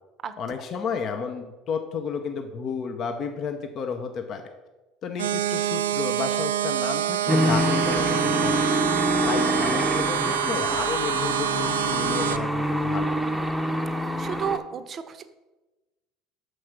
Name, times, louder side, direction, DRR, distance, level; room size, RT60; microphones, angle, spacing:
voice 1, 0.4-4.4 5.0-8.8 9.3-13.2, left 6 dB, 50° left, 6 dB, 0.7 m, -32 dB
sound 1, 5.2-12.4, right 11 dB, 85° right, 0.3 m, -26 dB
sound 2, 7.3-14.6, equal, ahead, 0.7 m, -26 dB
voice 2, 13.2-13.6 14.2-15.2, right 7 dB, 40° right, 11 dB, 0.7 m, -32 dB
6.5 x 4.7 x 5.9 m, 1.1 s
hypercardioid pair, 75°, 0 cm